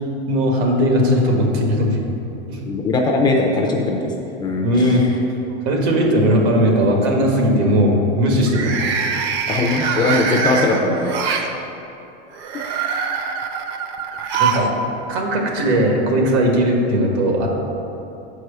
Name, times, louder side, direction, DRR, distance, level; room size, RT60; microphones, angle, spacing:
voice 1, 0.3-2.0 2.5-2.6 4.6-5.1 5.7-9.1 14.4-14.7 15.1-17.5, equal, 90° right, 1 dB, 1.7 m, -18 dB
voice 2, 2.7-4.1 4.4-5.0 9.5-11.5, left 2 dB, 15° left, 0 dB, 0.4 m, -20 dB
sound 1, 4.9-5.5 5.9-6.3 8.4-11.5 12.3-14.7 15.0-15.1 16.2-16.3, right 6 dB, 40° right, 0.6 m, -24 dB
7.2 x 4.8 x 6.7 m, 3.0 s
supercardioid pair, 165°, 31 cm